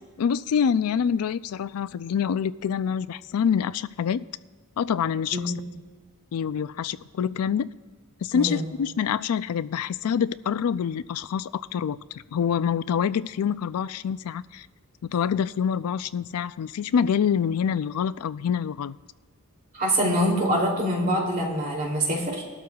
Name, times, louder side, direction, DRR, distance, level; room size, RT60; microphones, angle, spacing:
voice 1, 0.2-4.3 4.8-5.5 6.3-7.7 8.2-12.0 12.3-14.7 15.1-18.9, left 7 dB, 75° left, 16 dB, 0.4 m, -26 dB
voice 2, 19.7-22.4, equal, 40° right, -1 dB, 2.9 m, -24 dB
21.0 x 12.0 x 2.3 m, 1.3 s
head